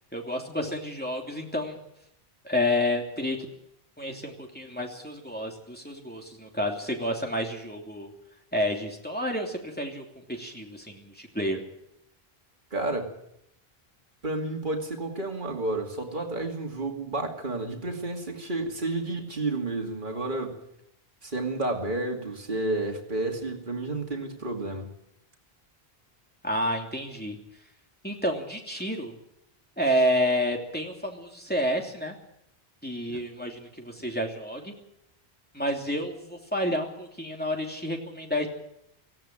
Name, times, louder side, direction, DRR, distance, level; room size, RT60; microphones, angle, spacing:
voice 1, 0.1-1.8 2.4-3.4 4.0-8.1 8.5-11.6 26.4-27.4 28.0-29.1 29.8-32.1 32.8-34.7 35.5-38.5, equal, 10° left, 1 dB, 3.0 m, -29 dB
voice 2, 12.7-13.2 14.2-20.6 21.2-24.9 33.1-33.2, right 2 dB, 50° right, 3 dB, 2.7 m, -31 dB
18.0 x 16.5 x 9.0 m, 0.78 s
omnidirectional pair, 1.1 m